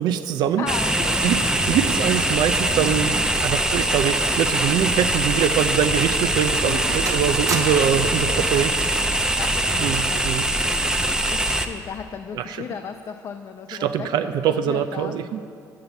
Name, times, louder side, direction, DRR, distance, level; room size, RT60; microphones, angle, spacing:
voice 1, 0.0-0.7 1.2-9.0 9.8-10.4 12.4-12.6 13.7-15.4, right 9 dB, 75° right, 10 dB, 0.4 m, -23 dB
voice 2, 0.6-1.5 6.6-7.0 8.7-15.2, left 7 dB, 50° left, 6 dB, 0.5 m, -36 dB
sound 1, 0.7-11.7, right 1 dB, 10° right, 0.6 m, -22 dB
sound 2, 0.8-9.5, left 1 dB, 75° left, 1.0 m, -40 dB
sound 3, 4.3-4.9 5.2-5.3 6.0-6.1 6.5-6.8 7.1-8.1 9.1-9.4, right 4 dB, 50° right, 1.0 m, -35 dB
8.8 x 5.4 x 8.0 m, 2.4 s
cardioid pair, 90°, 7 cm